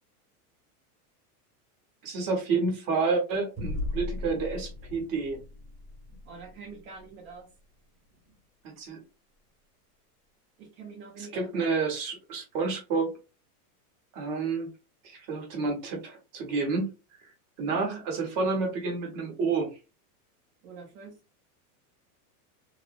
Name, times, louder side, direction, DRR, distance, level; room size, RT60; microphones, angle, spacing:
voice 1, 2.0-5.4 8.6-9.0 11.2-13.1 14.1-14.7 15.0-16.9 17.6-19.8, right 4 dB, 40° right, 1 dB, 1.1 m, -29 dB
sound 1, 3.6-8.4, left 2 dB, 15° right, 1.0 m, -39 dB
voice 2, 6.2-7.5 10.6-11.5 17.6-18.0 20.6-21.2, right 5 dB, 60° right, 1 dB, 0.9 m, -45 dB
3.0 x 2.4 x 2.3 m, 0.30 s
supercardioid pair, 170°, 46 cm